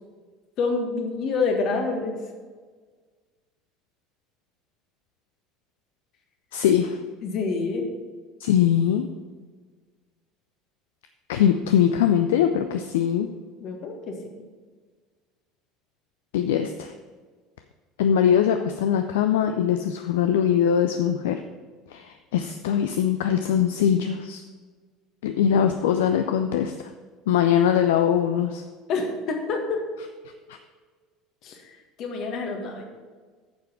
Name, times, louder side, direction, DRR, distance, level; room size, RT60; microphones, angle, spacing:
voice 1, 0.6-2.2 7.2-7.8 13.6-14.1 28.9-29.8 31.4-31.7 32.0-32.9, left 4 dB, 45° left, 3 dB, 1.6 m, -27 dB
voice 2, 6.5-7.0 8.4-9.1 11.3-13.3 16.3-16.9 18.0-21.4 21.9-24.4 25.2-26.7 27.3-28.6, left 9 dB, 65° left, 7 dB, 0.4 m, -22 dB
9.3 x 6.9 x 4.5 m, 1.5 s
figure-of-eight pair, 65°, 0 cm